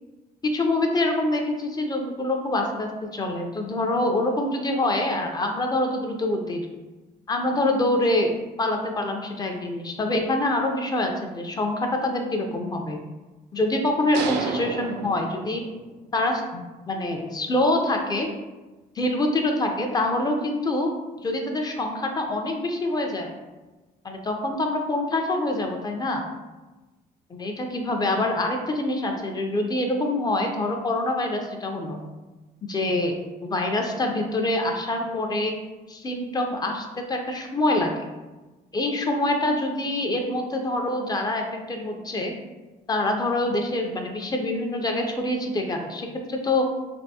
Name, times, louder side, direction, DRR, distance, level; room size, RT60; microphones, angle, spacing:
voice 1, 0.4-6.7 7.3-8.3 8.6-13.0 13.5-15.6 16.1-18.3 19.0-20.9 21.2-23.3 24.0-26.2 27.3-32.0 32.6-33.2 33.4-35.5 35.9-37.9 38.7-42.3 42.9-46.7, left 1 dB, 25° left, 3 dB, 0.4 m, -25 dB
sound 1, 14.1-16.0, right 4 dB, 80° right, 0.4 m, -31 dB
3.4 x 2.4 x 2.7 m, 1.2 s
cardioid pair, 110°, 17 cm